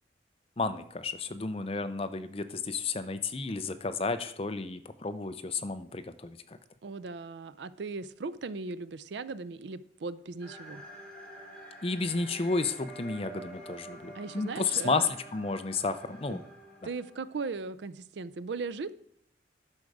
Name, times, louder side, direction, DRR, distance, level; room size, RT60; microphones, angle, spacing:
voice 1, 0.6-6.6 11.8-16.4, left 4 dB, 30° left, 10 dB, 0.6 m, -32 dB
voice 2, 6.8-10.8 14.1-15.1 15.8-16.0 16.3-16.4 16.8-18.9, right 4 dB, 75° right, 16 dB, 0.5 m, -38 dB
sound 1, 10.4-17.5, right 1 dB, 5° left, 2.3 m, -48 dB
10.5 x 6.5 x 4.8 m, 0.68 s
head